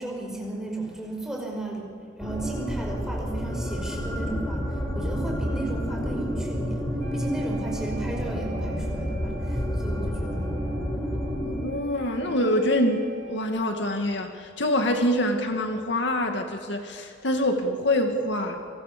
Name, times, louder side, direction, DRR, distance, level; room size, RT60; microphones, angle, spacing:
voice 1, 0.0-1.9 2.2-6.8 7.1-11.0, right 2 dB, 5° right, -1 dB, 5.5 m, -35 dB
sound 1, 2.2-11.6, equal, 15° left, 6.0 m, -29 dB
Wind instrument woodwind instrument, 7.0-13.9, right 1 dB, 45° right, 4.8 m, -48 dB
voice 2, 11.3-18.6, left 1 dB, 60° left, 4 dB, 2.4 m, -25 dB
28.5 x 26.0 x 7.1 m, 2.3 s
head